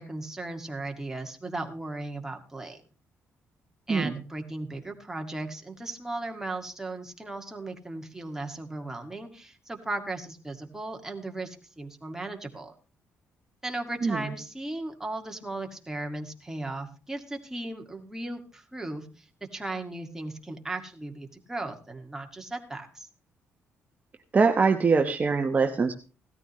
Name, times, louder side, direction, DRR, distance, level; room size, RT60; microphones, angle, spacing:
voice 1, 0.0-2.8 3.9-12.7 13.6-23.1, right 2 dB, 10° right, 3 dB, 2.1 m, -36 dB
voice 2, 14.0-14.3 24.3-25.9, right 4 dB, 30° right, 4 dB, 1.0 m, -23 dB
17.0 x 13.5 x 3.1 m, 0.35 s
cardioid pair, 110°, 5 cm